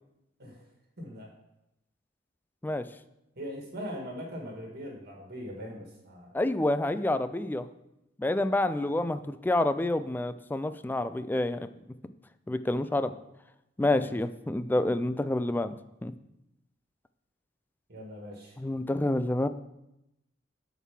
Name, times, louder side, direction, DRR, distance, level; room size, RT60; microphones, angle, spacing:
voice 1, 1.0-1.3 3.3-6.4 14.0-14.2 17.9-18.6, equal, 55° right, -1 dB, 1.6 m, -41 dB
voice 2, 6.3-7.7 8.2-11.7 12.5-13.1 13.8-15.7 16.0-16.1 18.6-19.5, left 1 dB, 10° left, 12 dB, 0.3 m, -28 dB
6.6 x 4.7 x 6.0 m, 0.88 s
head